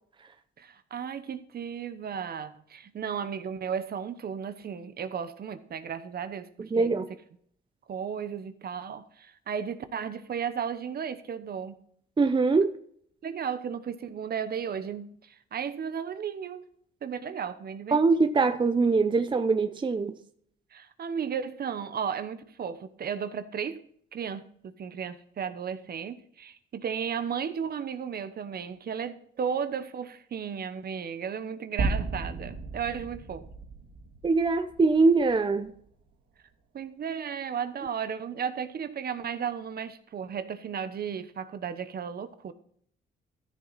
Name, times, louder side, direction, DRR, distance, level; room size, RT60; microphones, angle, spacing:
voice 1, 0.6-6.5 6.7-6.9 7.9-11.8 13.2-16.7 17.0-18.0 20.7-23.8 24.1-33.4 36.7-42.5, right 7 dB, 50° right, 1.0 m, -34 dB
voice 2, 6.7-7.1 12.2-12.7 17.9-20.1 34.2-35.7, right 4 dB, 25° right, 0.7 m, -23 dB
sound 1, 31.8-36.0, right 3 dB, 80° right, 2.8 m, -34 dB
14.0 x 7.1 x 4.1 m
cardioid pair, 90°, 20 cm